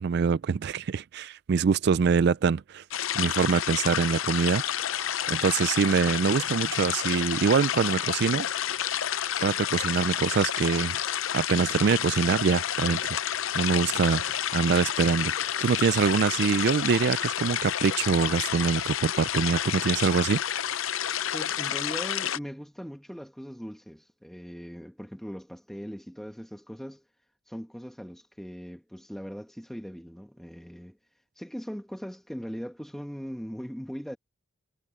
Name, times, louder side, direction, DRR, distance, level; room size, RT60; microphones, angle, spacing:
voice 1, 0.0-2.8 3.1-4.6 5.3-8.5 9.4-11.0 11.3-13.2 13.5-20.4, right 6 dB, 50° right, 0.3 m, -24 dB
sound 1, 2.9-22.4, left 10 dB, 70° left, 0.6 m, -30 dB
Wind instrument woodwind instrument, 4.1-8.4, right 1 dB, 20° right, 2.0 m, -55 dB
voice 2, 21.3-27.0 27.5-31.0 31.4-34.2, equal, ahead, 1.6 m, -40 dB
head